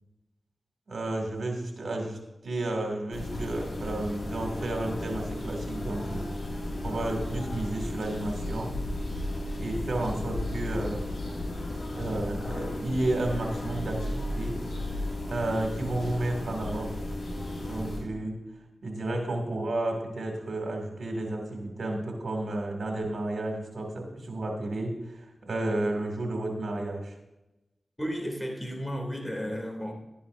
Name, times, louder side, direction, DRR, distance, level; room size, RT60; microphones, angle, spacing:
voice 1, 0.9-2.2 2.4-6.3 6.8-8.7 9.6-11.1 11.9-14.6 15.3-16.9 17.6-18.4 18.8-27.1, right 2 dB, 80° right, 1 dB, 2.4 m, -32 dB
sound 1, 3.1-18.0, left 1 dB, 75° left, 3.6 m, -34 dB
voice 2, 28.0-29.9, equal, 15° left, 1 dB, 2.7 m, -33 dB
13.0 x 10.0 x 2.6 m, 0.97 s
cardioid pair, 40°, 0 cm